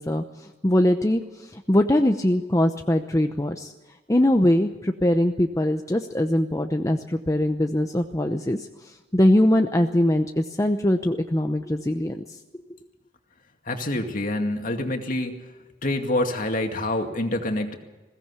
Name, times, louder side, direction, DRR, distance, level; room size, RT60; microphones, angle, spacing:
voice 1, 0.0-3.7 4.1-12.2, left 1 dB, 15° left, 5 dB, 0.8 m, -22 dB
voice 2, 13.7-15.3 15.8-17.8, left 1 dB, 45° left, 4 dB, 2.3 m, -26 dB
21.5 x 17.0 x 8.3 m, 1.2 s
head